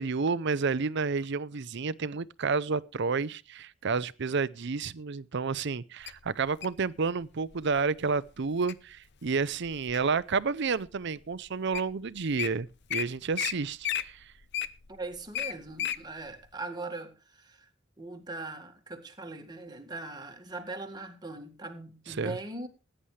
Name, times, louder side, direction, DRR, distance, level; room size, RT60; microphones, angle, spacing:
voice 1, 0.0-14.3 22.1-22.4, right 4 dB, 60° right, 0.6 m, -30 dB
Wild animals, 6.1-6.8 7.5-7.8 8.3-8.7 9.3-10.2 10.8-10.9 11.5-11.6 11.7-11.9 12.2-12.5 12.9-13.0 13.3-13.5 13.8-16.0 16.4-16.5, left 10 dB, 60° left, 0.8 m, -33 dB
voice 2, 14.9-17.7 18.0-22.7, right 2 dB, 20° right, 1.9 m, -40 dB
19.5 x 10.0 x 3.3 m
head